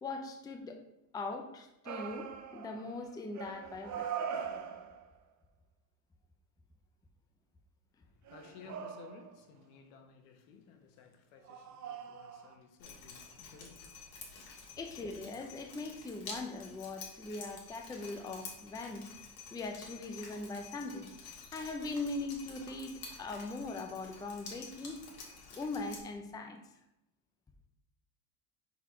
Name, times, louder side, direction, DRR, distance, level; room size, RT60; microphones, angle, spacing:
voice 1, 0.0-0.8 1.1-4.1 14.8-19.0 19.5-21.1 21.5-25.0 25.6-26.6, left 3 dB, 10° left, 4 dB, 0.4 m, -40 dB
sound 1, 1.9-3.1 3.4-5.1 8.3-9.5 11.4-12.5, right 7 dB, 40° right, 0.6 m, -42 dB
voice 2, 7.9-14.7 14.9-15.1, left 5 dB, 90° left, 4 dB, 1.2 m, -56 dB
Drip, 12.8-26.0, left 4 dB, 50° left, 2.0 m, -50 dB
4.6 x 4.2 x 5.5 m, 0.87 s
cardioid pair, 125°, 47 cm